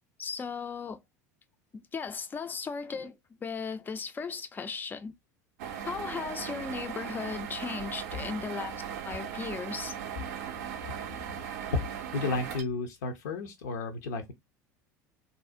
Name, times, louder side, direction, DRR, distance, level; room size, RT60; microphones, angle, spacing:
voice 1, 0.2-1.0 1.7-5.1 5.8-9.9, left 5 dB, 20° left, 0.4 m, -37 dB
sound 1, 5.6-12.6, right 8 dB, 65° right, 0.4 m, -38 dB
voice 2, 10.8-11.4 11.7-11.8 12.1-14.3, left 3 dB, 70° left, 0.6 m, -33 dB
2.5 x 2.0 x 2.4 m
figure-of-eight pair, 75°, 10 cm